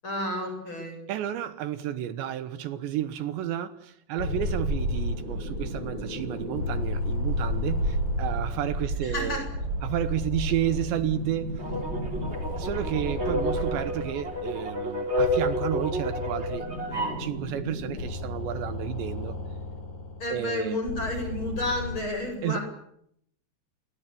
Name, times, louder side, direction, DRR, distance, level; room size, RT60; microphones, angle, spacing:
voice 1, 0.0-1.0 9.0-9.5 20.2-22.6, left 1 dB, 25° left, 8.6 m, -31 dB
voice 2, 1.1-9.4 9.8-11.6 12.6-19.4 20.3-20.8 22.4-22.6, right 11 dB, 75° right, 3.5 m, -31 dB
sound 1, 4.2-22.0, left 2 dB, 55° left, 9.1 m, -34 dB
sound 2, 4.4-13.7, right 4 dB, 40° right, 2.1 m, -34 dB
sound 3, 11.6-17.3, equal, 15° right, 4.0 m, -30 dB
27.5 x 23.0 x 8.7 m
omnidirectional pair, 5.2 m